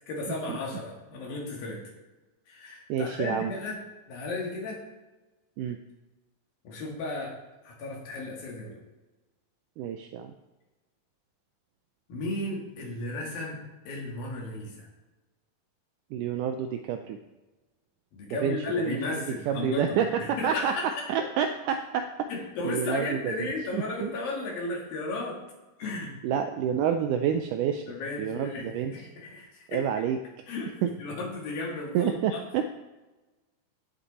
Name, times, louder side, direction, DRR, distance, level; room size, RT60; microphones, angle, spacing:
voice 1, 0.1-1.9 2.5-3.8 4.1-4.8 6.6-8.8 12.1-14.9 18.1-20.9 22.3-25.4 25.8-26.1 27.9-28.7 28.9-29.8 30.5-32.4, left 2 dB, 75° left, -2 dB, 3.9 m, -34 dB
voice 2, 2.9-3.5 5.6-5.8 9.8-10.3 16.1-17.2 18.3-20.7 21.1-22.3 22.6-24.1 26.2-27.8 28.2-28.9 29.7-30.2 30.8-30.9 31.9-32.6, right 8 dB, 85° right, 7 dB, 1.8 m, -29 dB
15.5 x 5.6 x 4.1 m, 1.1 s
omnidirectional pair, 4.2 m